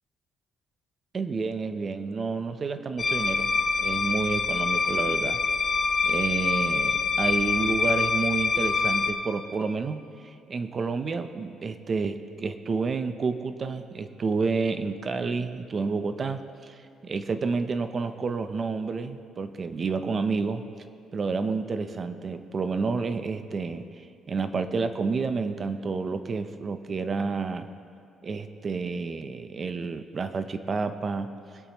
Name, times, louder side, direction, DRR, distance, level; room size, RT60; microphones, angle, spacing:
voice 1, 1.1-3.5 3.8-5.4 6.0-20.7 21.1-27.7 28.2-31.3, right 4 dB, 30° right, 9 dB, 0.6 m, -30 dB
sound 1, 3.0-9.1, left 4 dB, 30° left, 0.7 m, -25 dB
21.0 x 8.3 x 3.0 m, 2.5 s
cardioid pair, 145°, 0 cm